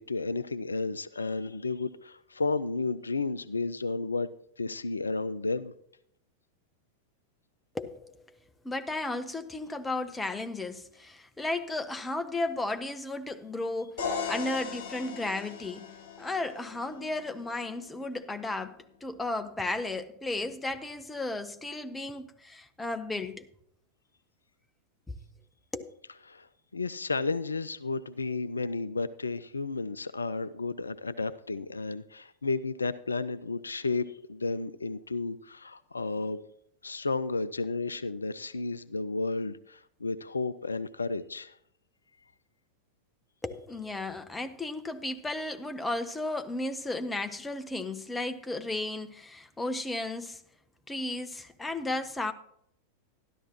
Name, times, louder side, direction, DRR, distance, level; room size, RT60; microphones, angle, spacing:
voice 1, 0.0-4.3 4.6-5.7 26.3-26.5 26.7-36.4 36.8-41.6, left 3 dB, 75° left, 0.3 m, -32 dB
voice 2, 7.7-8.2 8.6-14.0 14.3-15.9 16.2-23.4 25.7-25.9 43.4-50.4 50.9-52.3, left 2 dB, 10° left, 0.6 m, -34 dB
sound 1, 14.0-17.8, left 6 dB, 50° left, 3.8 m, -38 dB
12.5 x 11.5 x 2.9 m
figure-of-eight pair, 90°, 0 cm